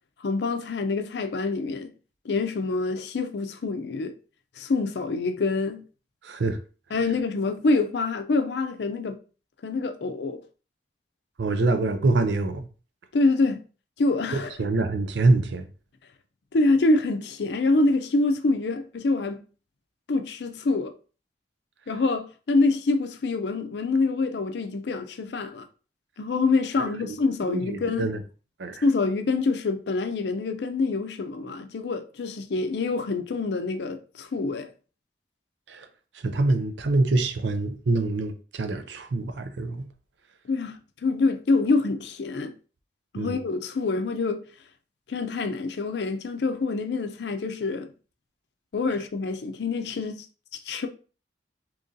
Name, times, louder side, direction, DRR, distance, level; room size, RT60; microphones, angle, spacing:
voice 1, 0.2-1.9 2.2-4.1 4.6-5.8 6.9-9.2 9.6-10.4 13.1-13.6 14.0-14.5 16.5-19.4 20.1-20.9 21.9-25.6 26.2-28.1 28.8-34.7 40.5-42.5 43.1-44.4 45.1-47.9 48.7-50.3 50.7-50.9, left 3 dB, 70° left, 0.5 m, -26 dB
voice 2, 6.2-6.6 11.4-12.7 14.3-15.7 26.8-27.2 27.5-28.2 28.6-28.8 35.7-35.9 36.1-39.9 43.2-43.4, right 2 dB, 85° right, 0.5 m, -25 dB
3.0 x 2.6 x 3.7 m
head